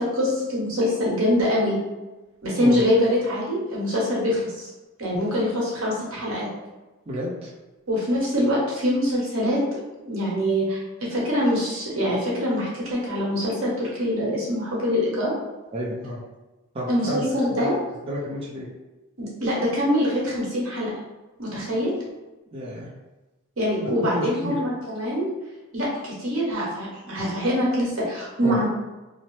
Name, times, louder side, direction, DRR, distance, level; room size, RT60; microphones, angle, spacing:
voice 1, 0.0-1.8 2.4-4.7 5.0-6.5 7.9-9.8 10.1-15.3 16.9-17.7 19.2-20.9 21.4-21.9 23.6-25.3 25.7-28.7, equal, 80° right, -5 dB, 1.1 m, -24 dB
voice 2, 7.1-7.5 15.7-16.2 16.7-17.7 18.0-18.7 22.5-22.9 23.8-24.6 28.4-28.6, equal, 25° right, -7 dB, 0.5 m, -30 dB
2.9 x 2.0 x 3.1 m, 1.1 s
head